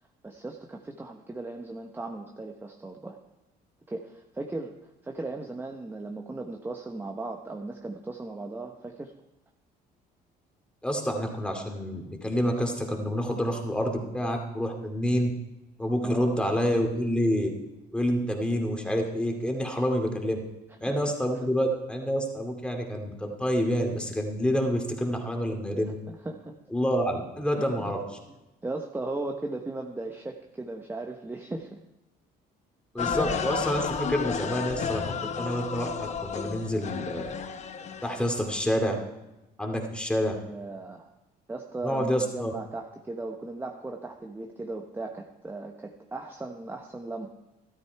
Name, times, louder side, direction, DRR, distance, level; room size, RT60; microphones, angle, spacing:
voice 1, 0.2-3.2 3.9-4.7 5.0-9.1 16.0-16.4 20.9-21.0 26.1-26.6 27.6-27.9 28.6-31.8 33.0-33.2 40.5-41.1 41.5-47.3, right 2 dB, 10° right, 3 dB, 0.9 m, -37 dB
voice 2, 10.8-15.3 15.8-17.5 17.9-20.4 20.8-26.0 26.7-28.2 32.9-37.3 38.0-39.0 39.6-40.3 41.8-42.5, equal, 5° left, 2 dB, 2.4 m, -28 dB
sound 1, 33.0-38.6, left 6 dB, 40° left, 0.9 m, -32 dB
13.5 x 13.0 x 4.6 m, 0.99 s
cardioid pair, 110°, 17 cm